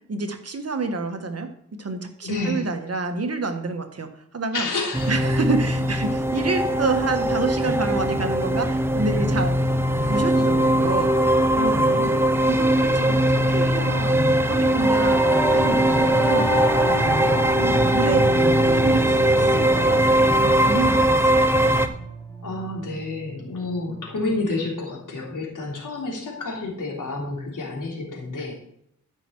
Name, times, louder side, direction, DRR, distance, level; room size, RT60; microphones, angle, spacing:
voice 1, 0.1-1.5 1.8-4.7 5.1-9.7 10.0-11.1 11.5-12.2 12.5-14.2 14.5-15.2 15.5-16.5 17.6-20.1 20.4-21.4, right 3 dB, 50° right, 6 dB, 1.4 m, -28 dB
voice 2, 2.2-2.7 4.5-5.1 22.4-28.6, left 2 dB, 85° left, -3 dB, 3.3 m, -29 dB
sound 1, 4.9-21.9, right 1 dB, 10° right, 0.9 m, -20 dB
Singing / Musical instrument, 14.8-24.3, right 2 dB, 15° left, 2.6 m, -31 dB
13.0 x 5.9 x 4.6 m, 0.72 s
cardioid pair, 75°, 31 cm